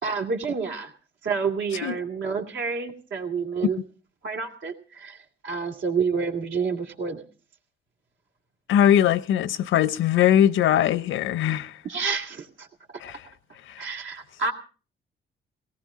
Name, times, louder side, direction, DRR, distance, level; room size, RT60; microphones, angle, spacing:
voice 1, 0.0-0.9 1.2-3.8 4.2-7.2 11.8-12.7 13.8-14.5, right 5 dB, 75° right, 2.4 m, -29 dB
voice 2, 8.7-11.7 13.0-13.1, left 10 dB, 75° left, 0.7 m, -20 dB
18.0 x 17.5 x 3.7 m
cardioid pair, 90°, 20 cm